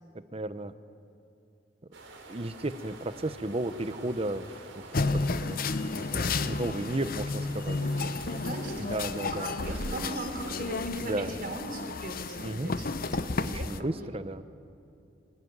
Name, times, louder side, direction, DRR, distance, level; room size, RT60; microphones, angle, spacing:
voice 1, 0.3-0.7 2.3-5.7 5.9-7.8 8.8-9.6 9.9-10.1 11.0-11.3 12.4-12.7 13.4-14.6, right 2 dB, 30° right, 12 dB, 0.9 m, -34 dB
sound 1, 1.9-10.8, right 3 dB, 90° right, 3.7 m, -48 dB
sound 2, 4.9-13.8, left 3 dB, 50° left, 0.8 m, -32 dB
voice 2, 6.8-7.2 7.7-13.9, right 2 dB, 50° right, 3 dB, 3.8 m, -40 dB
26.5 x 18.5 x 9.6 m, 2.7 s
head